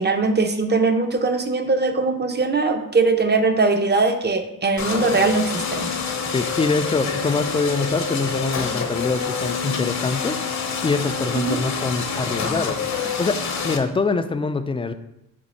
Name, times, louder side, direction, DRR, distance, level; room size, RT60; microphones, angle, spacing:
voice 1, 0.0-5.9 11.3-11.6, right 3 dB, 30° right, 6 dB, 0.6 m, -21 dB
sound 1, 4.8-13.8, left 5 dB, 50° left, 0.7 m, -27 dB
voice 2, 6.3-10.4 10.8-14.9, left 4 dB, 15° left, 10 dB, 0.3 m, -24 dB
5.2 x 2.4 x 4.1 m, 0.84 s
supercardioid pair, 55°, 35 cm